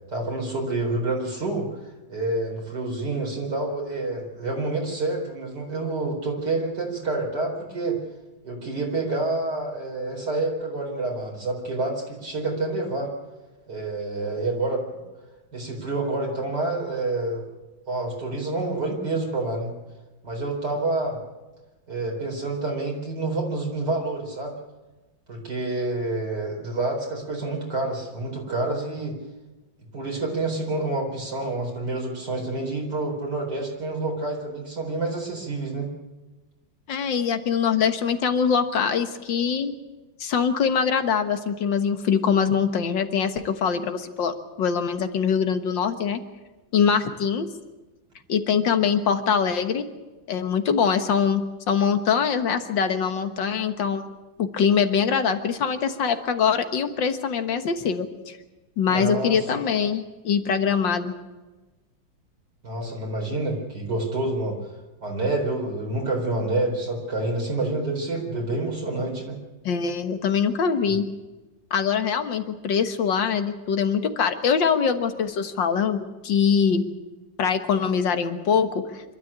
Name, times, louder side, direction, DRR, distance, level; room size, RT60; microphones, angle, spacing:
voice 1, 0.1-1.7 2.1-8.0 8.4-13.1 13.7-14.8 15.5-17.4 17.9-19.7 20.2-21.2 21.9-24.5 25.3-29.1 29.9-35.9 58.9-59.6 62.6-64.6 65.0-69.4, right 2 dB, 60° right, 0 dB, 4.9 m, -28 dB
voice 2, 36.9-39.7 40.2-46.2 46.7-47.5 48.3-49.8 50.3-51.4 51.7-54.1 54.4-58.4 58.8-61.1 69.7-71.0 71.7-76.9 77.4-79.0, left 6 dB, 75° left, 8 dB, 2.1 m, -23 dB
26.0 x 13.0 x 8.8 m, 1.2 s
omnidirectional pair, 2.1 m